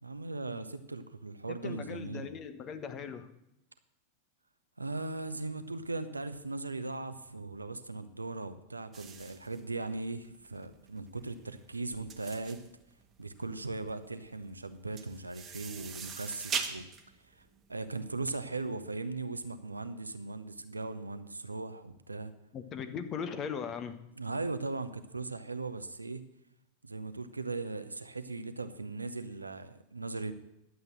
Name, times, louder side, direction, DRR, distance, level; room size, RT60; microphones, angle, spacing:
voice 1, 0.0-2.3 4.8-12.6 13.2-16.9 17.2-22.3 24.2-26.2 26.8-30.3, right 3 dB, 80° right, 10 dB, 0.8 m, -38 dB
voice 2, 1.5-3.3 22.5-24.0, left 6 dB, 30° left, 8 dB, 1.3 m, -39 dB
sound 1, 8.9-18.5, right 6 dB, 25° right, 1.3 m, -42 dB
11.5 x 8.0 x 7.9 m, 0.84 s
figure-of-eight pair, 90°, 0 cm